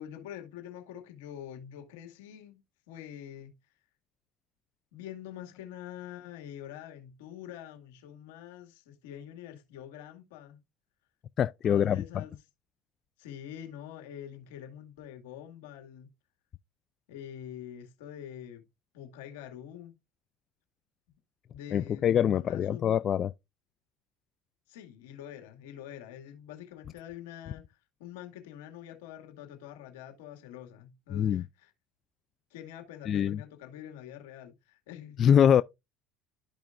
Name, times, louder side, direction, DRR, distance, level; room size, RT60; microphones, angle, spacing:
voice 1, 0.0-3.5 4.9-10.6 11.6-12.4 13.2-16.1 17.1-18.6 18.9-20.0 21.5-22.8 24.7-27.7 28.0-31.7 32.5-35.4, left 10 dB, 85° left, 2.1 m, -45 dB
voice 2, 11.4-12.0 21.7-23.3 31.1-31.4 33.1-33.4 35.2-35.6, left 9 dB, 45° left, 0.3 m, -24 dB
12.5 x 5.1 x 2.5 m
supercardioid pair, 100°, 0 cm